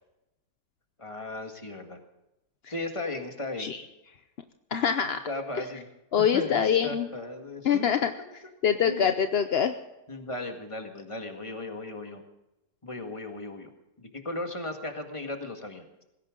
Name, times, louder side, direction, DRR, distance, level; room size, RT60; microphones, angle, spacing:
voice 1, 1.0-2.0 2.7-3.7 5.3-5.9 6.3-8.1 8.9-9.1 10.1-12.2 12.8-13.7 14.0-16.0, left 2 dB, 20° left, 4 dB, 1.8 m, -36 dB
voice 2, 4.7-5.2 5.6-5.7 6.1-7.1 7.6-8.1 8.6-9.7, left 8 dB, 55° left, 8 dB, 0.7 m, -24 dB
19.0 x 16.5 x 3.8 m, 0.94 s
omnidirectional pair, 1.8 m